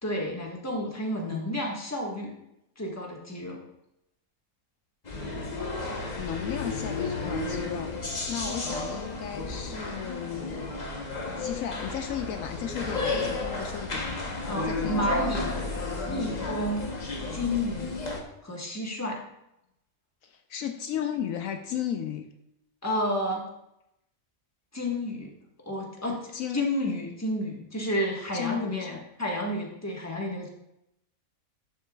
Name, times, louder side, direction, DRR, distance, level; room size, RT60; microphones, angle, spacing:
voice 1, 0.0-2.4 2.8-3.6 14.5-15.6 16.1-16.9 17.3-18.0 18.4-19.2 22.8-23.5 24.7-25.3 25.6-26.3 26.5-30.5, left 1 dB, 10° left, -1 dB, 1.4 m, -31 dB
sound 1, 5.0-18.2, left 3 dB, 35° left, 1.0 m, -32 dB
voice 2, 6.2-8.0 8.3-10.7 11.4-14.1 14.6-15.2 20.2-22.3 26.3-26.7 28.3-29.0, left 9 dB, 75° left, 7 dB, 1.0 m, -35 dB
12.0 x 7.1 x 2.4 m, 0.82 s
omnidirectional pair, 1.5 m